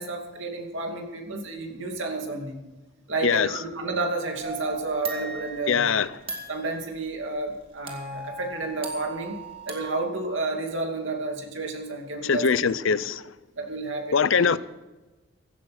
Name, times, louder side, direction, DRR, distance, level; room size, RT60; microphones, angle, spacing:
voice 1, 0.0-2.6 3.1-5.9 6.5-9.4 9.7-12.7 13.6-14.5, right 2 dB, 70° right, 2.6 m, -31 dB
sound 1, 4.4-6.9 7.9-9.9, right 3 dB, 25° right, 2.1 m, -37 dB
voice 2, 5.7-6.1 12.2-13.2 14.1-14.6, left 6 dB, 75° left, 0.6 m, -22 dB
16.0 x 13.0 x 4.3 m
head